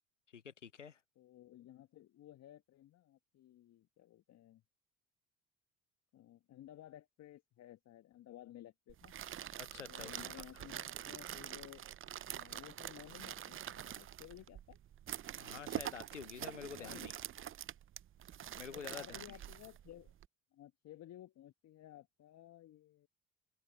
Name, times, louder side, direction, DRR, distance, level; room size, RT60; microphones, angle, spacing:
voice 1, 0.3-1.0 9.6-10.6 15.3-17.1 18.6-19.2, left 7 dB, 90° left, 1.0 m, -49 dB
voice 2, 1.1-4.6 6.1-9.2 9.9-11.8 12.3-14.8 16.7-17.2 18.7-20.1 20.5-23.1, left 13 dB, 50° left, 1.6 m, -56 dB
sound 1, 8.9-20.3, right 11 dB, 35° right, 0.8 m, -46 dB
open air
figure-of-eight pair, 55°, 35 cm